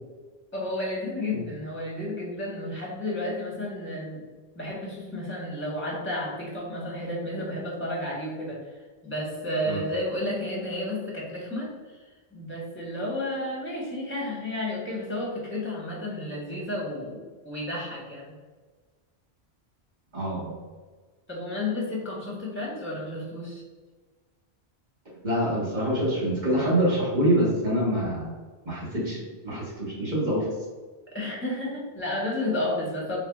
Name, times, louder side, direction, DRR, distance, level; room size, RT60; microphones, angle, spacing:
voice 1, 0.5-4.2 4.5-8.6 9.0-12.0 12.3-17.2 17.4-18.3 21.3-23.6 31.1-33.2, left 1 dB, 10° left, -4 dB, 1.3 m, -32 dB
voice 2, 20.1-20.5 25.2-28.3 28.6-30.5, right 1 dB, 45° right, -6 dB, 1.7 m, -25 dB
4.6 x 3.8 x 2.4 m, 1.4 s
omnidirectional pair, 1.1 m